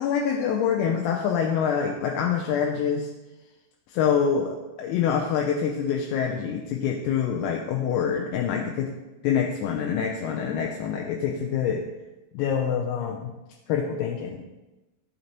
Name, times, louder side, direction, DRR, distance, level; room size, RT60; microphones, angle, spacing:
voice 1, 0.0-3.1 3.9-8.9 9.2-11.8 12.3-13.3 13.7-14.4, left 7 dB, 45° left, 1 dB, 0.6 m, -26 dB
10.5 x 3.9 x 2.9 m, 1.1 s
figure-of-eight pair, 90°, 0 cm